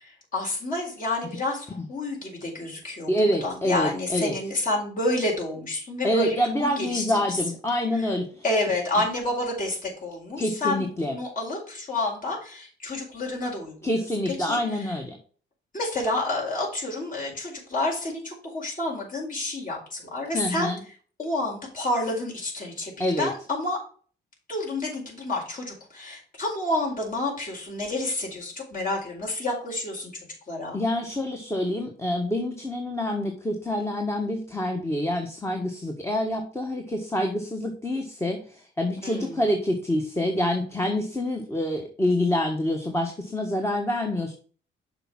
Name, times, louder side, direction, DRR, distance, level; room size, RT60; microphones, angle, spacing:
voice 1, 0.3-7.4 8.4-13.7 14.4-14.6 15.7-20.7 21.2-23.8 24.5-30.1 30.5-30.8 39.0-39.4, left 2 dB, 45° left, -2 dB, 4.7 m, -29 dB
voice 2, 3.1-4.3 6.0-8.4 10.4-11.1 13.8-15.2 20.3-20.8 23.0-23.3 30.7-44.3, left 1 dB, 15° left, 2 dB, 1.4 m, -27 dB
6.7 x 4.7 x 6.0 m, 0.42 s
cardioid pair, 90°, 20 cm